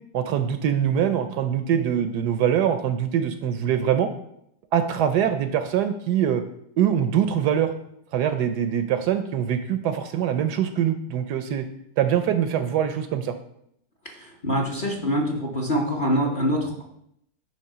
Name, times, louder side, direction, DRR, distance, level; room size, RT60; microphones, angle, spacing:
voice 1, 0.1-4.1 4.7-6.4 6.8-7.7 8.1-11.6 12.0-13.3, right 9 dB, 75° right, 9 dB, 1.1 m, -23 dB
voice 2, 14.0-16.8, equal, 35° left, -1 dB, 0.9 m, -25 dB
8.7 x 3.3 x 5.5 m, 0.73 s
omnidirectional pair, 1.9 m